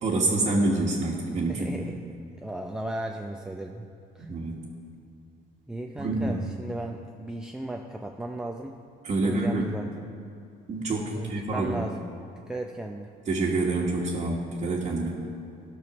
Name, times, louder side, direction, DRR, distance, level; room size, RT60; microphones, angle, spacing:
voice 1, 0.0-1.8 4.3-4.5 6.0-6.4 9.0-9.7 10.7-11.8 13.3-15.2, right 2 dB, 40° right, -3 dB, 1.5 m, -27 dB
voice 2, 1.5-3.8 4.1-4.3 5.7-8.8 9.2-10.1 11.1-13.1 15.3-15.4, right 1 dB, 5° right, 2 dB, 0.6 m, -36 dB
14.0 x 6.2 x 6.0 m, 2.6 s
cardioid pair, 110°, 17 cm